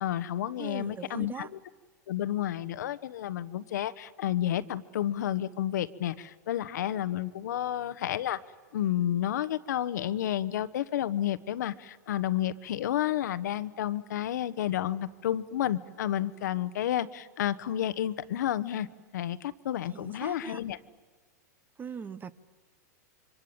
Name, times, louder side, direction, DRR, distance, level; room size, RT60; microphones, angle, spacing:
voice 1, 0.0-1.5 2.1-8.4 8.7-18.9 19.1-20.8, left 12 dB, 75° left, 14 dB, 1.1 m, -31 dB
voice 2, 0.6-1.5 19.9-20.6 21.8-22.3, right 6 dB, 20° right, 18 dB, 1.0 m, -40 dB
26.5 x 25.0 x 8.7 m, 1.3 s
hypercardioid pair, 120°, 10 cm